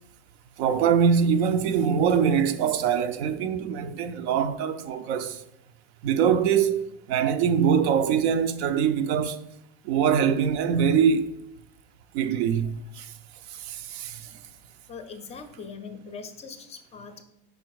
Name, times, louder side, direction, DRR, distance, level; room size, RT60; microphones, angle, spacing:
voice 1, 0.6-5.4 6.0-9.4 9.8-11.3 12.1-13.1 13.5-14.3, right 7 dB, 90° right, 0.6 m, -23 dB
voice 2, 14.9-17.2, left 5 dB, 20° left, 0.4 m, -41 dB
5.3 x 4.3 x 4.7 m
cardioid pair, 155°, 31 cm